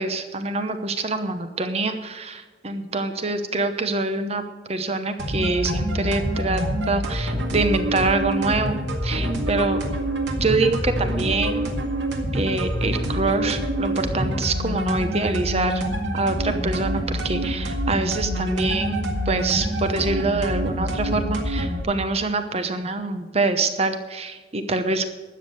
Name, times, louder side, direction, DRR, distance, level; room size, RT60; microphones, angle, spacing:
voice 1, 0.0-4.4 4.7-8.8 9.0-9.8 10.4-11.7 12.3-15.8 16.1-25.1, right 3 dB, 35° right, 8 dB, 0.9 m, -25 dB
sound 1, 5.2-21.8, equal, 85° right, 2.0 m, -26 dB
12.5 x 8.6 x 6.7 m, 1.4 s
head